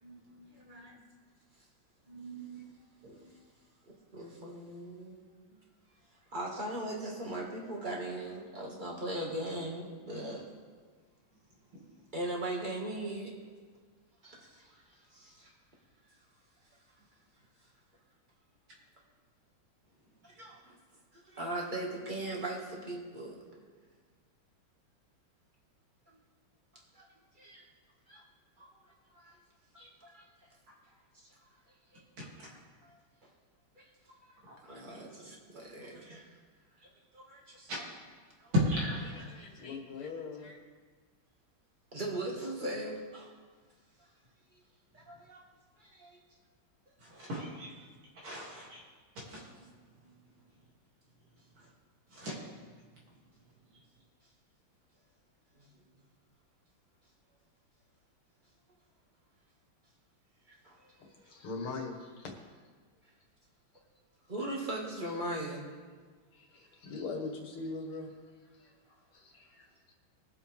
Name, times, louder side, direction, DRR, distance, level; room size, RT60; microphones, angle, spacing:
voice 1, 0.0-1.0 2.1-2.7 3.0-3.2 11.7-11.8 32.4-32.6 37.7-37.8 38.5-39.5 47.0-47.7 48.2-48.8 49.2-49.5 51.6-51.7 52.1-52.4, left 1 dB, 80° right, -5 dB, 3.7 m, -36 dB
voice 2, 0.6-0.9 4.1-5.2 6.3-10.4 12.1-13.3 14.2-14.8 15.1-15.5 20.2-20.8 21.1-23.4 26.9-27.0 27.4-27.6 28.1-28.2 28.6-28.7 29.1-29.3 29.7-30.2 31.9-32.0 32.8-33.0 33.8-33.9 34.6-36.2 37.1-37.8 38.4-38.5 41.9-43.3 44.9-45.4 45.8-46.2 60.6-60.9 61.2-61.3 64.3-65.6, right 1 dB, 25° right, -2 dB, 2.0 m, -39 dB
voice 3, 39.3-40.6 61.3-62.3 66.3-68.1 68.6-69.9, left 3 dB, 80° left, 1 dB, 2.5 m, -42 dB
21.5 x 7.6 x 3.6 m, 1.5 s
omnidirectional pair, 2.3 m